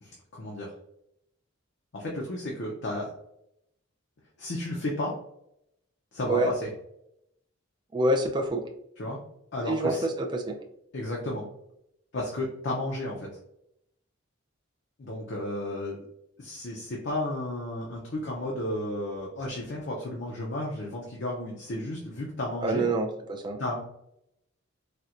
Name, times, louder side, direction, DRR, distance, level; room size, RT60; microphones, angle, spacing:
voice 1, 0.0-0.7 1.9-3.1 4.4-5.1 6.1-6.7 9.0-9.2 9.5-10.1 10.9-11.5 12.1-13.3 15.0-16.0 16.4-22.8 23.6-23.8, left 1 dB, 55° left, -3 dB, 0.5 m, -33 dB
voice 2, 7.9-8.6 9.7-10.5 22.6-23.6, right 1 dB, 20° right, 2 dB, 0.3 m, -26 dB
4.2 x 2.1 x 2.4 m, 0.78 s
head